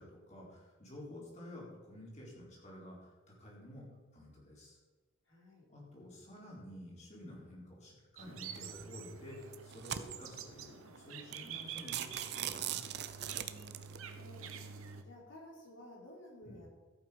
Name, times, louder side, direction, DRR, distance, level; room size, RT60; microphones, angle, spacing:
voice 1, 0.0-3.9 4.1-4.8 5.7-12.8 16.4-16.6, left 1 dB, 35° left, -4 dB, 4.2 m, -51 dB
voice 2, 5.2-5.7 13.4-14.5 15.0-16.7, left 1 dB, 65° left, -3 dB, 4.7 m, -54 dB
sound 1, 8.2-15.0, right 7 dB, 90° right, 1.1 m, -48 dB
sound 2, 8.5-8.8 9.4-10.4 11.0-11.1 11.3-11.5 11.8-14.0, right 10 dB, 50° right, 0.7 m, -40 dB
14.5 x 8.7 x 5.3 m, 1.3 s
head